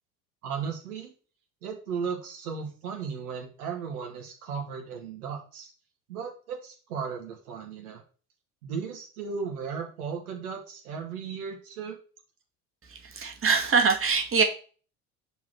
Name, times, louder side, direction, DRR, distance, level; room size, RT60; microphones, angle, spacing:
voice 1, 0.4-1.1 1.6-5.7 6.1-8.0 8.6-12.0, right 6 dB, 70° right, 1 dB, 2.7 m, -35 dB
voice 2, 12.9-14.4, right 5 dB, 30° right, 3 dB, 2.3 m, -24 dB
6.8 x 4.8 x 6.4 m, 0.39 s
figure-of-eight pair, 65°, 46 cm